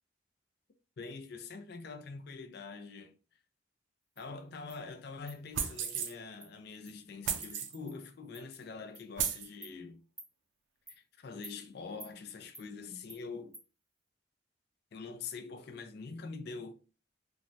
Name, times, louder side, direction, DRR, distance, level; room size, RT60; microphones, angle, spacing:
voice 1, 1.0-3.1 4.2-10.0 10.9-13.6 14.9-16.7, left 4 dB, 55° left, 0.4 m, -44 dB
Insect, 4.2-4.3 4.7-4.8 5.3-5.4 5.8-6.0 6.4-6.5 6.9-7.0 7.4-7.5 7.9-8.0 8.3-8.4 8.9-9.1 9.6-9.7 10.2-10.3 10.9-11.0 11.4-11.6 12.0-12.1 12.5-12.7 13.1-13.2 13.5-13.7, right 1 dB, 10° right, 0.6 m, -50 dB
sound 1, 5.5-6.1 7.2-7.8 8.5-8.6 9.2-9.5, right 8 dB, 75° right, 0.4 m, -34 dB
3.1 x 2.2 x 2.6 m
head